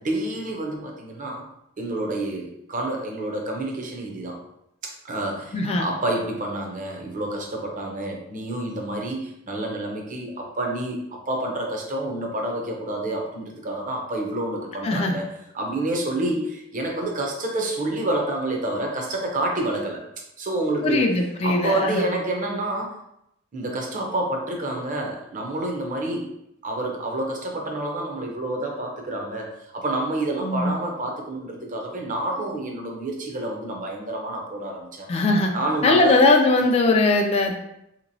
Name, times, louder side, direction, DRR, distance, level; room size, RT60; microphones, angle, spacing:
voice 1, 0.0-1.5 1.8-4.4 4.8-11.0 11.3-15.3 15.5-20.0 20.4-21.0 21.4-22.9 23.5-26.3 26.6-35.1 35.5-36.2, right 1 dB, 40° right, 0 dB, 0.6 m, -28 dB
voice 2, 5.5-5.9 14.8-15.2 20.8-22.1 30.4-30.8 35.1-35.5 35.8-37.5, left 2 dB, 30° left, 2 dB, 0.3 m, -20 dB
3.6 x 2.9 x 2.6 m, 0.80 s
head